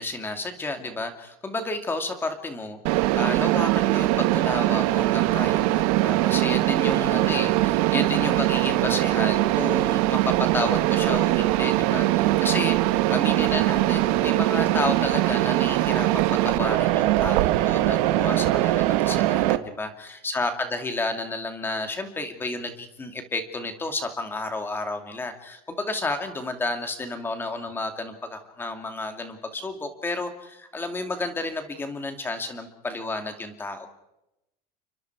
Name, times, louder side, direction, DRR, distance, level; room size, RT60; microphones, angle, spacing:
voice 1, 0.0-33.9, left 2 dB, 10° left, 7 dB, 2.5 m, -31 dB
Mechanisms, 2.8-19.6, right 16 dB, 60° right, 1.3 m, -22 dB
30.0 x 24.5 x 4.8 m, 0.88 s
cardioid pair, 180°, 21 cm